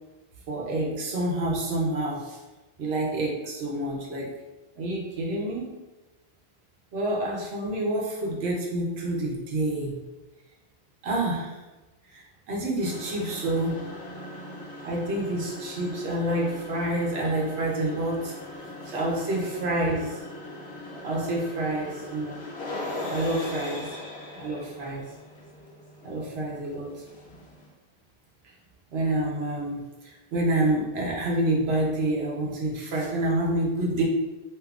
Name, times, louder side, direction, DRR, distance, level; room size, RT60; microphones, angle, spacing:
voice 1, 0.5-2.4 2.8-4.3 4.8-5.8 6.9-10.0 11.0-11.6 12.1-13.9 14.8-20.2 21.0-22.4 23.1-23.9 24.3-25.1 26.0-27.0 28.9-34.0, right 1 dB, 85° right, -2 dB, 1.0 m, -28 dB
sound 1, 12.8-27.7, left 1 dB, 90° left, 1.0 m, -40 dB
2.9 x 2.4 x 3.4 m, 1.1 s
omnidirectional pair, 1.0 m